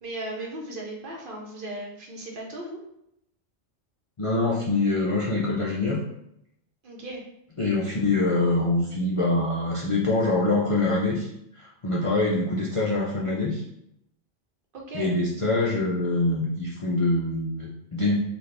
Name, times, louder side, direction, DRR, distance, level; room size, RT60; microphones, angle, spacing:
voice 1, 0.0-2.8 6.8-7.2 14.7-15.1, right 1 dB, 50° right, -1 dB, 0.9 m, -36 dB
voice 2, 4.2-6.0 7.6-11.3 11.6-13.6 14.9-18.2, left 2 dB, 45° left, -5 dB, 0.4 m, -24 dB
4.0 x 2.4 x 3.2 m, 0.79 s
omnidirectional pair, 1.2 m